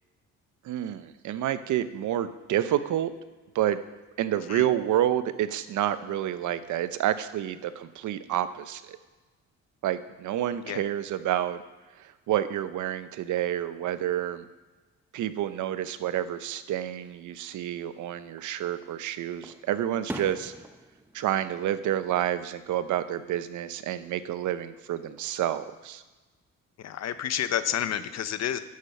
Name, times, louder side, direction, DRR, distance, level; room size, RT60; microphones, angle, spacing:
voice 1, 0.6-3.1 3.5-3.8 4.2-9.0 9.8-11.6 12.0-14.4 15.1-20.5 21.1-26.0, right 11 dB, 75° right, 13 dB, 0.7 m, -29 dB
Fireworks, 18.3-19.0 19.4-22.6 22.9-23.4 25.0-25.8, right 1 dB, 5° right, 0.7 m, -44 dB
voice 2, 26.8-28.6, left 10 dB, 60° left, 12 dB, 0.8 m, -30 dB
9.5 x 6.7 x 6.6 m, 1.2 s
cardioid pair, 90°, 30 cm